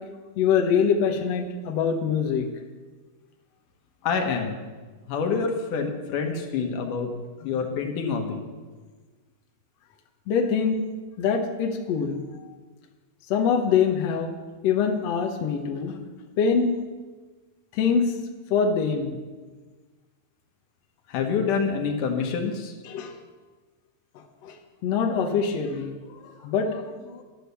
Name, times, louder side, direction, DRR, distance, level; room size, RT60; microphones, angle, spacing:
voice 1, 0.4-2.5 10.3-10.8 11.2-12.2 13.3-14.3 14.6-15.9 16.4-16.8 17.7-18.1 18.5-19.2 22.8-23.2 24.4-24.6 24.8-27.2, left 6 dB, 85° left, 2 dB, 1.4 m, -24 dB
voice 2, 4.0-4.6 5.1-7.1 7.4-8.5 21.1-22.7, left 5 dB, 65° left, 3 dB, 2.4 m, -27 dB
11.0 x 10.0 x 6.9 m, 1.3 s
omnidirectional pair, 4.7 m